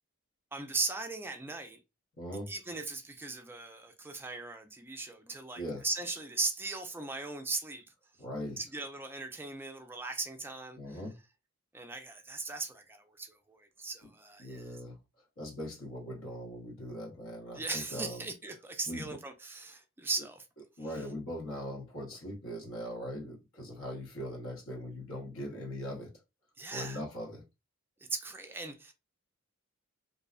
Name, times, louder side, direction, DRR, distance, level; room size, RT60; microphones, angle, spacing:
voice 1, 0.5-1.8 2.5-7.8 8.6-11.0 11.7-14.8 17.5-20.5 26.6-27.0 28.1-28.9, right 3 dB, 10° right, 0.4 m, -38 dB
voice 2, 2.2-2.5 5.6-5.8 8.2-8.6 10.8-11.1 14.4-15.0 15.4-18.2 18.9-19.2 20.8-26.1 26.7-27.4, equal, 70° left, 1.0 m, -40 dB
2.6 x 2.1 x 2.4 m
head